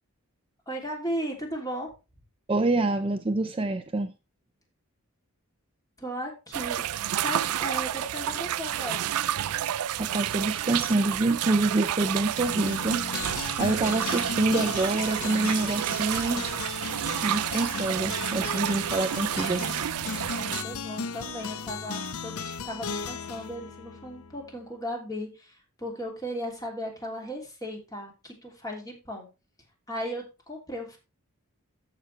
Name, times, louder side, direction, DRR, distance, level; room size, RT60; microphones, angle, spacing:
voice 1, 0.7-1.9 6.0-6.8 7.2-9.1 20.3-29.3 29.9-31.0, equal, 15° left, 3.0 m, -36 dB
voice 2, 2.5-4.1 10.0-13.0 13.6-16.5 17.2-19.7, right 2 dB, 25° right, 0.5 m, -26 dB
sound 1, 6.5-20.6, right 11 dB, 80° right, 0.4 m, -30 dB
sound 2, 12.4-24.6, left 5 dB, 75° left, 0.8 m, -36 dB
13.5 x 6.0 x 3.3 m
head